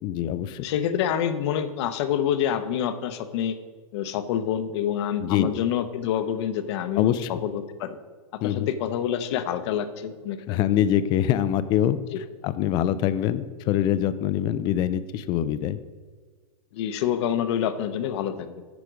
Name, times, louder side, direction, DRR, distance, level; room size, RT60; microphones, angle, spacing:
voice 1, 0.0-0.6 5.2-5.5 7.0-7.3 8.4-8.7 10.5-12.0 12.4-15.8, left 11 dB, 25° left, 13 dB, 0.3 m, -24 dB
voice 2, 0.6-3.6 3.9-8.0 8.4-10.6 12.1-12.2 16.7-18.6, left 9 dB, 50° left, 10 dB, 0.7 m, -27 dB
9.4 x 5.1 x 5.0 m, 1.5 s
hypercardioid pair, 145°, 19 cm